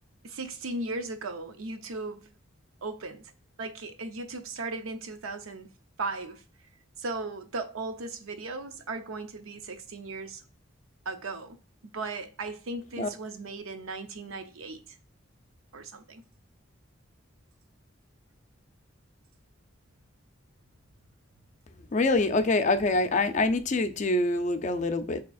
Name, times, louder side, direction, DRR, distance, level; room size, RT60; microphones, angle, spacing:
voice 1, 0.2-2.3 2.8-3.2 3.6-5.7 6.0-6.4 7.0-10.4 11.1-11.6 11.8-14.8 15.7-16.2, right 3 dB, 85° right, 0.6 m, -37 dB
voice 2, 21.9-25.2, left 2 dB, 35° left, 0.4 m, -25 dB
6.7 x 2.8 x 2.3 m
head